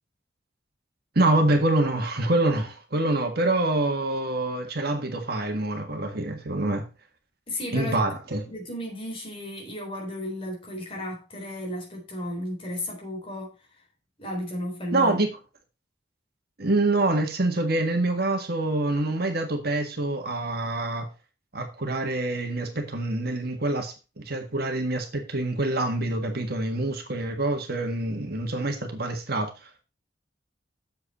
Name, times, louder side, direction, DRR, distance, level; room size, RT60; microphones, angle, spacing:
voice 1, 1.1-6.8 7.7-8.4 14.9-15.3 16.6-21.1 21.5-29.5, right 2 dB, 55° right, 1.7 m, -26 dB
voice 2, 7.5-8.0 8.5-13.5 14.2-15.2, left 1 dB, 30° left, 3.8 m, -34 dB
7.9 x 7.2 x 4.2 m
head